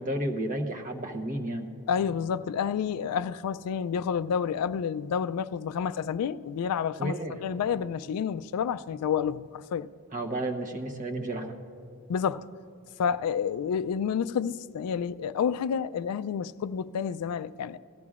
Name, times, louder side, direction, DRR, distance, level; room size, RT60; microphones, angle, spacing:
voice 1, 0.0-1.7 7.0-7.3 10.1-11.5, right 1 dB, 35° right, 0.9 m, -32 dB
voice 2, 1.9-7.2 7.4-9.9 12.1-12.4 13.0-17.8, left 7 dB, 85° left, 0.3 m, -29 dB
17.5 x 14.0 x 2.4 m
head